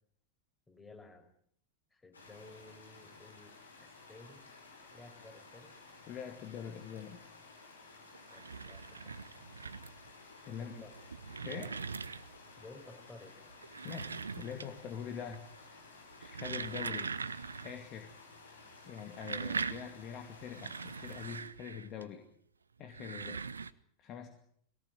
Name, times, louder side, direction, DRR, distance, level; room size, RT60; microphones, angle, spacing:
voice 1, 0.7-1.3 1.9-4.5 4.8-5.7 8.2-9.0 9.4-9.9 10.6-11.0 12.6-13.4, left 2 dB, 10° left, 5 dB, 5.5 m, -55 dB
sound 1, 2.1-21.4, left 3 dB, 75° left, 5.9 m, -55 dB
voice 2, 6.1-7.2 10.5-10.8 11.4-11.7 13.8-15.4 16.2-17.1 17.6-18.2 18.9-22.2 22.8-23.4 24.0-24.3, left 8 dB, 35° left, 5 dB, 2.5 m, -44 dB
sound 2, 8.1-10.1 10.8-12.5 13.5-14.9 15.2-15.7 16.1-17.8 18.1-18.2 18.9-22.0 22.8-23.7, right 5 dB, 75° right, 0.9 m, -41 dB
21.5 x 18.0 x 9.1 m, 0.66 s
figure-of-eight pair, 90°, 0 cm